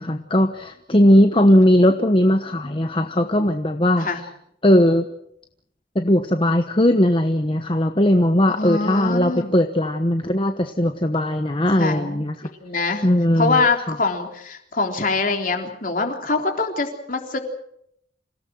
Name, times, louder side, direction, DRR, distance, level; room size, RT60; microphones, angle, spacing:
voice 1, 0.0-4.1 4.6-5.0 5.9-12.3 13.0-13.6, left 1 dB, 30° left, 6 dB, 1.1 m, -18 dB
voice 2, 8.5-9.5 11.8-12.2 12.6-13.1 13.4-17.4, left 3 dB, 45° left, 4 dB, 3.6 m, -24 dB
27.0 x 17.0 x 7.9 m, 0.75 s
head